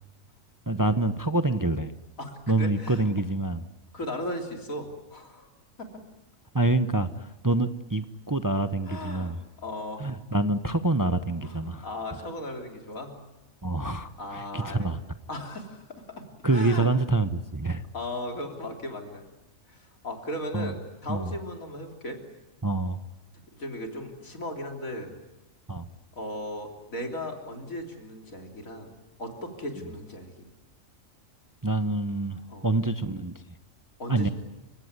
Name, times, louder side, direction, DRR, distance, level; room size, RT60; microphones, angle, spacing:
voice 1, 0.7-1.9 2.5-3.6 6.5-9.4 10.0-11.9 13.6-15.0 16.4-17.8 20.5-20.7 21.1-21.3 22.6-23.0 25.7-25.9 31.6-33.4 34.1-34.3, right 2 dB, 20° right, 10 dB, 0.7 m, -26 dB
voice 2, 2.2-3.0 3.9-5.5 5.8-5.9 8.9-10.1 11.4-13.1 14.2-14.9 15.3-16.9 17.9-19.3 19.7-22.2 23.6-25.1 26.1-28.9 29.2-30.3 32.5-32.7 34.0-34.3, left 1 dB, 85° left, 3 dB, 3.8 m, -37 dB
29.0 x 16.5 x 9.5 m, 1.0 s
omnidirectional pair, 1.4 m